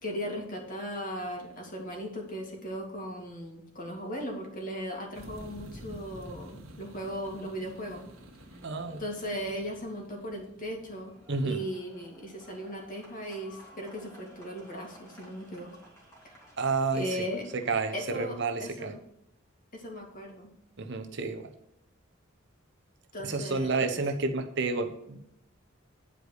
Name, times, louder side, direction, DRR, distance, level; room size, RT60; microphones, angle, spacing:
voice 1, 0.0-8.0 9.0-11.1 11.4-15.7 16.2-16.4 16.9-17.4 17.9-19.0 19.7-20.5 23.1-24.0, equal, 45° left, 0 dB, 2.3 m, -37 dB
sound 1, 5.1-11.8, equal, 90° right, 1.8 m, -49 dB
voice 2, 8.6-9.0 11.3-11.6 16.6-17.2 17.5-18.9 20.8-21.5 23.2-25.2, right 3 dB, 60° right, 6 dB, 0.9 m, -30 dB
sound 2, 11.0-18.4, equal, 15° left, 2.4 m, -56 dB
10.0 x 5.0 x 6.5 m, 0.78 s
head